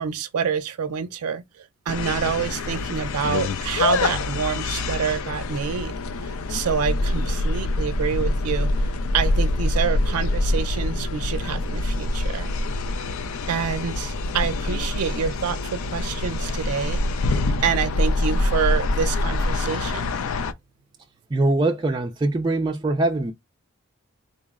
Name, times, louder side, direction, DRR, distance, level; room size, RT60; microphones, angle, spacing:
voice 1, 0.0-5.9 6.2-8.7 9.1-12.5 13.5-17.0 17.6-20.1, right 7 dB, 90° right, 0.4 m, -27 dB
sound 1, 1.9-20.5, left 2 dB, 70° left, 0.4 m, -25 dB
voice 2, 21.3-23.3, right 2 dB, 20° right, 0.3 m, -22 dB
3.9 x 2.0 x 3.6 m
head